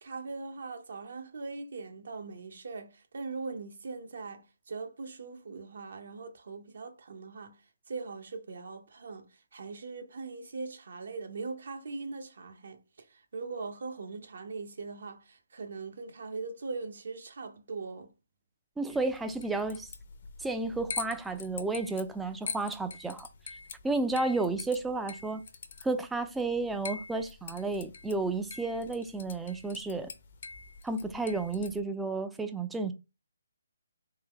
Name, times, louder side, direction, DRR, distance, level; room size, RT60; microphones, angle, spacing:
voice 1, 0.0-7.6 7.9-9.3 9.5-18.1, right 4 dB, 65° right, 0.7 m, -41 dB
voice 2, 18.8-19.9 20.4-23.3 23.8-25.4 25.8-30.1 30.8-32.9, right 3 dB, 5° right, 0.3 m, -32 dB
sound 1, 18.9-31.8, left 5 dB, 50° left, 0.7 m, -44 dB
3.3 x 3.0 x 3.3 m
hypercardioid pair, 160°, 0 cm